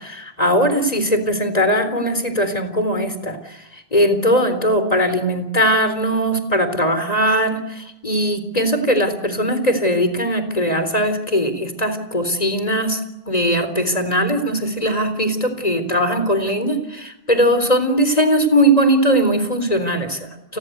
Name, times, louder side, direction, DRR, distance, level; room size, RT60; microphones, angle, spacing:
voice 1, 0.0-13.0 13.3-20.6, equal, 40° left, 10 dB, 4.0 m, -19 dB
29.5 x 21.5 x 8.1 m, 0.88 s
omnidirectional pair, 1.0 m